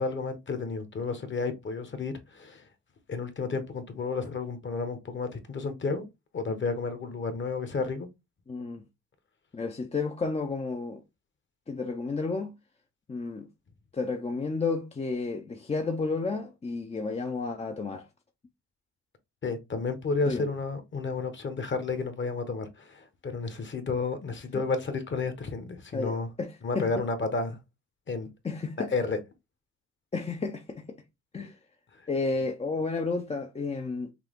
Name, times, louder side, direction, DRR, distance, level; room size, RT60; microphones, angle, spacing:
voice 1, 0.0-2.6 3.1-6.0 6.3-8.1 19.4-26.3 26.6-27.6 28.1-28.3 28.9-29.2, left 4 dB, 40° left, 1.2 m, -31 dB
voice 2, 8.5-8.8 9.5-11.0 11.7-12.5 13.1-13.5 13.9-18.1 20.3-20.5 24.5-24.6 25.9-27.0 28.4-28.9 30.1-31.0 31.3-31.6 32.1-34.1, left 4 dB, 20° left, 0.6 m, -32 dB
5.9 x 2.3 x 3.6 m
cardioid pair, 90°, 30 cm